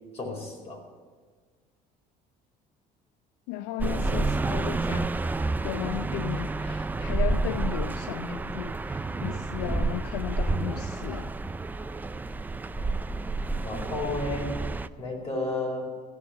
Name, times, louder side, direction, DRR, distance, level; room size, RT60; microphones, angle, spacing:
voice 1, 0.1-0.8 13.6-14.5 15.0-15.9, left 2 dB, 35° left, 4.7 m, -32 dB
voice 2, 3.5-5.2 5.6-11.3, left 15 dB, 90° left, 0.4 m, -35 dB
sound 1, 3.8-14.9, right 3 dB, 10° right, 0.4 m, -29 dB
16.0 x 7.0 x 9.1 m
cardioid pair, 130°, 17 cm